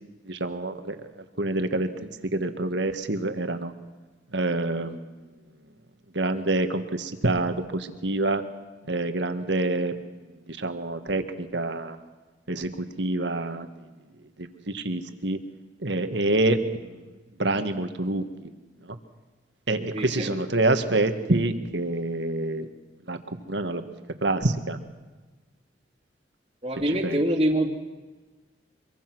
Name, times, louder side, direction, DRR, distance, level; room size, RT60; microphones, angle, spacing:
voice 1, 0.2-1.0 1.4-3.7 4.3-5.0 6.1-8.4 8.9-9.9 10.5-12.0 12.5-13.7 14.4-14.5 14.7-15.4 15.8-16.9 17.4-18.3 18.8-19.0 19.7-22.7 23.1-23.2 23.4-23.8 24.2-24.8 26.8-27.2, right 2 dB, 70° right, 8 dB, 1.8 m, -26 dB
voice 2, 19.9-20.3 26.6-27.7, right 1 dB, 30° right, -4 dB, 2.4 m, -25 dB
25.0 x 23.5 x 6.2 m, 1.3 s
head